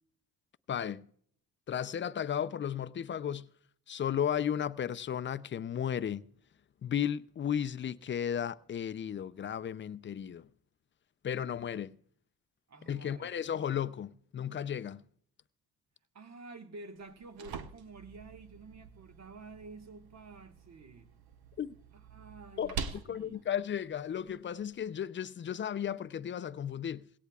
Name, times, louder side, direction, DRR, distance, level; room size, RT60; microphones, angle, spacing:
voice 1, 0.7-1.0 1.7-3.5 3.9-6.2 6.8-10.5 11.2-11.9 12.9-15.0 21.6-21.7 22.6-22.7 23.1-27.1, left 9 dB, 35° left, 0.5 m, -34 dB
voice 2, 12.7-13.3 16.1-21.1 21.9-23.4, right 3 dB, 45° right, 1.5 m, -50 dB
sound 1, 17.0-24.9, right 6 dB, 90° right, 0.9 m, -46 dB
18.0 x 17.0 x 2.4 m
cardioid pair, 80°, 36 cm